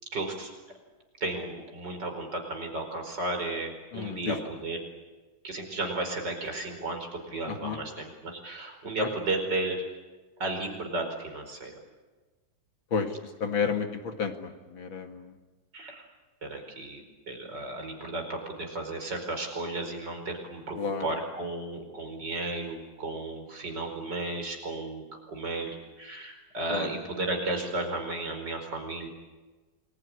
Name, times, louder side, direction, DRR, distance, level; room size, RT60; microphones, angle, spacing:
voice 1, 0.1-0.5 1.2-4.8 5.4-9.8 10.4-11.7 13.6-13.7 15.7-16.0 16.4-29.1, right 2 dB, 60° right, 4 dB, 5.5 m, -34 dB
voice 2, 3.9-4.4 7.5-7.8 9.0-9.1 12.9-13.1 13.4-15.3 20.8-21.1 26.7-26.9, left 5 dB, 75° left, 6 dB, 2.9 m, -31 dB
28.0 x 21.0 x 9.9 m, 1.3 s
omnidirectional pair, 2.1 m